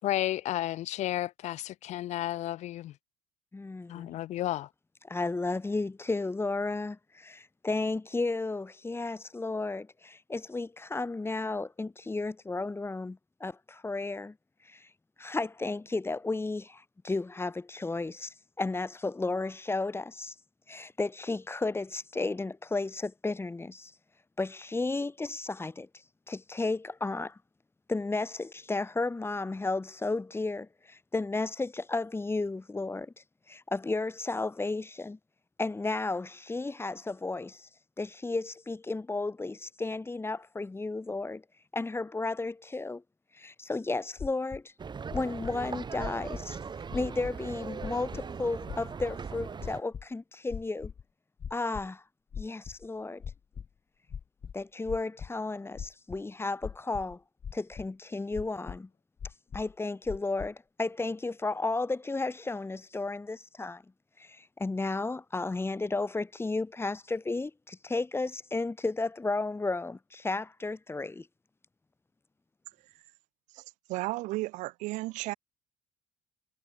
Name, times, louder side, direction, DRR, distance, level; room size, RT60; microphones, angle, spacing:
voice 1, 0.0-2.9 3.9-4.7, left 14 dB, 65° left, 5.9 m, -32 dB
voice 2, 3.5-4.2 5.1-14.3 14.7-14.9 15.2-20.3 20.7-23.9 24.4-25.9 26.3-27.4 27.9-33.1 33.5-35.2 35.6-37.7 38.0-41.4 41.7-43.0 43.3-44.7 45.1-46.6 46.9-50.9 51.5-52.0 52.4-53.2 54.5-57.2 57.5-58.9 59.5-63.8 64.2-71.3, left 3 dB, 20° left, 3.3 m, -33 dB
sound 1, 44.2-44.6 45.1-45.5 46.0-46.5 46.9-47.3 47.8-48.2 48.7-49.1 49.6-50.0 50.5-51.0 51.4-51.9 52.3-52.9 53.2-53.7 54.1-55.3 55.8-56.2 56.6-57.1 57.4-57.9 58.3-58.8 59.2-59.7 60.1-60.5, left 7 dB, 45° left, 7.0 m, -40 dB
sound 2, 44.8-49.8, right 5 dB, 35° right, 7.8 m, -39 dB
voice 3, 73.9-75.3, right 20 dB, 75° right, 6.8 m, -33 dB
supercardioid pair, 70°, 12 cm